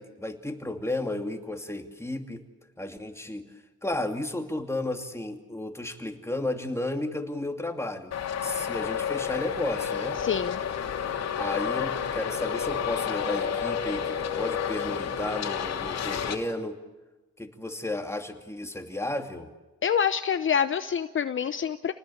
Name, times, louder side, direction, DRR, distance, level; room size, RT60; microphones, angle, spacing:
voice 1, 0.0-2.4 2.8-3.5 3.8-8.2 8.4-10.2 11.4-16.8 17.4-19.5, left 1 dB, 10° left, 4 dB, 2.6 m, -33 dB
Traffic noise roadway noise, 8.1-16.3, left 7 dB, 60° left, 2.9 m, -30 dB
voice 2, 10.2-10.6 19.8-21.9, left 7 dB, 40° left, 10 dB, 0.9 m, -26 dB
28.0 x 19.5 x 8.6 m, 1.2 s
cardioid pair, 90°, 30 cm